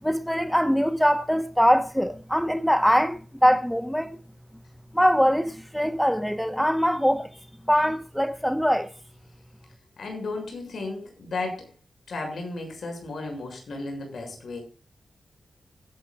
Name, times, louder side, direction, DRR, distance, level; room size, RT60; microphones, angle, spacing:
voice 1, 0.0-4.2 4.9-7.3 7.7-8.9, equal, ahead, 1.2 m, -22 dB
voice 2, 10.0-11.7 12.1-14.6, left 3 dB, 75° left, 6.8 m, -34 dB
25.0 x 10.0 x 2.5 m
cardioid pair, 55°, 0 cm